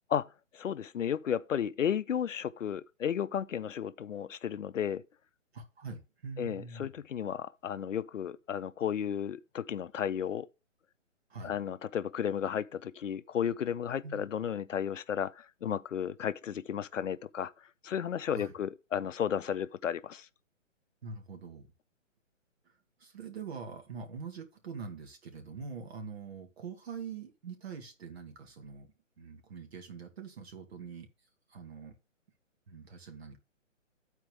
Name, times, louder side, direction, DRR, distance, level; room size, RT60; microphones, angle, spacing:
voice 1, 0.5-5.0 6.4-10.5 11.4-17.5 17.8-20.3, left 8 dB, 75° left, 0.6 m, -33 dB
voice 2, 5.5-6.9 11.3-11.5 14.0-14.2 18.3-18.5 21.0-21.7 22.7-31.1 31.5-32.0 32.7-33.4, right 5 dB, 50° right, 2.1 m, -44 dB
13.0 x 4.5 x 3.5 m
figure-of-eight pair, 140°, 38 cm